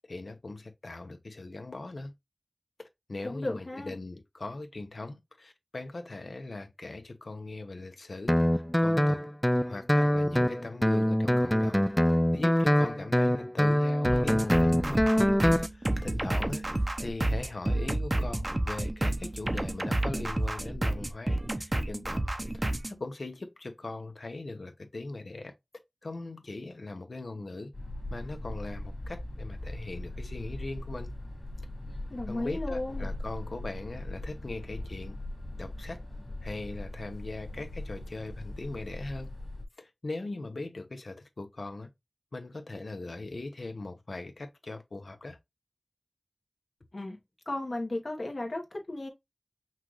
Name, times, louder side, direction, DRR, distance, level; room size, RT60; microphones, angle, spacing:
voice 1, 0.1-2.1 3.1-9.3 9.6-11.8 12.3-15.1 15.7-16.7 17.0-22.2 22.5-25.5 26.0-27.7 28.1-31.1 32.3-35.2 35.6-36.0 36.4-39.3 39.8-41.9 42.3-45.4, left 2 dB, 90° left, 0.7 m, -40 dB
voice 2, 3.2-3.9 32.1-33.1 46.9-47.2 47.5-49.1, left 2 dB, 70° left, 1.3 m, -35 dB
Guitar, 8.3-15.7, equal, 10° left, 0.3 m, -24 dB
sound 1, 14.0-23.0, right 1 dB, 40° right, 0.7 m, -30 dB
sound 2, 27.7-39.6, left 1 dB, 45° left, 1.8 m, -40 dB
5.7 x 2.4 x 3.1 m
wide cardioid pair, 45°, 0 cm